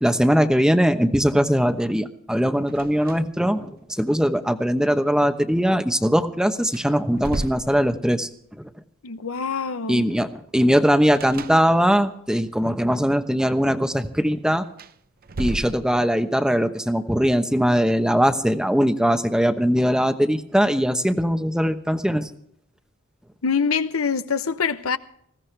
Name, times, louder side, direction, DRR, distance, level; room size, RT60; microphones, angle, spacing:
voice 1, 0.0-8.3 8.6-8.7 9.9-10.3 10.5-14.7 15.4-22.3, equal, 5° right, 0.9 m, -20 dB
sound 1, 2.7-3.5 3.8-3.9 6.1-6.2 6.6-8.4 11.1-12.1 14.6-16.3, right 2 dB, 45° right, 0.7 m, -34 dB
voice 2, 9.0-10.1 23.4-25.0, left 5 dB, 80° left, 0.8 m, -24 dB
20.0 x 16.5 x 3.4 m
head